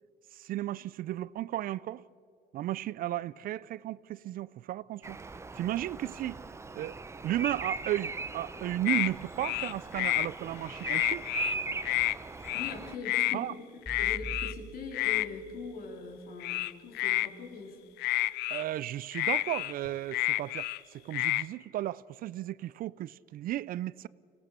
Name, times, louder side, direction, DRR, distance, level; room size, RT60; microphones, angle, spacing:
voice 1, 0.3-2.0 2.5-5.2 5.5-6.4 6.7-7.0 7.2-11.3 13.3-13.5 18.5-24.1, right 14 dB, 60° right, 0.4 m, -34 dB
Bird vocalization bird call bird song, 5.0-13.0, right 3 dB, 15° right, 0.7 m, -39 dB
sound 1, 8.9-9.1 9.4-10.3 10.7-11.5 11.8-12.2 12.4-12.7 13.1-13.4 13.9-14.5 14.9-15.3 16.4-17.3 18.0-18.6 19.1-20.8 21.1-21.4, left 18 dB, 80° left, 0.4 m, -29 dB
voice 2, 12.5-13.6 14.0-17.8, left 4 dB, 60° left, 3.9 m, -42 dB
sound 2, 13.9-16.1, right 2 dB, 15° left, 5.8 m, -44 dB
25.0 x 17.5 x 6.7 m
cardioid pair, 110°, 17 cm